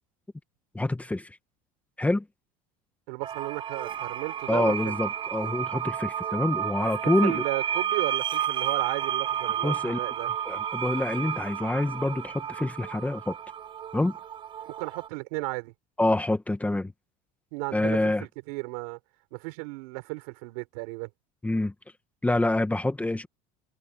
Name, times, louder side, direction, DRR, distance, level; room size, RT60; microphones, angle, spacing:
voice 1, 0.7-1.4 2.0-2.2 4.5-7.4 9.6-10.0 10.5-13.3 13.9-14.1 16.0-16.9 17.7-18.2 21.4-21.7 22.2-23.3, left 2 dB, 10° left, 1.7 m, -26 dB
voice 2, 3.1-5.0 7.0-10.3 14.6-15.7 17.5-19.0 19.3-21.1, right 29 dB, 85° right, 4.8 m, -34 dB
sound 1, 3.2-15.1, right 9 dB, 25° right, 0.4 m, -31 dB
supercardioid pair, 120°, 18 cm